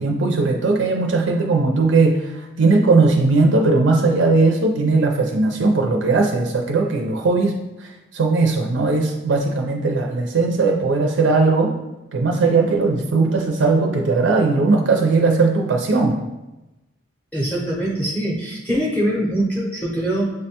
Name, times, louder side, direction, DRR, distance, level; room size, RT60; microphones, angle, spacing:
voice 1, 0.0-11.8 12.1-16.2, right 3 dB, 65° right, 2 dB, 0.4 m, -18 dB
voice 2, 17.3-20.3, right 1 dB, 10° left, -4 dB, 0.6 m, -23 dB
6.4 x 2.1 x 2.8 m, 1.0 s
head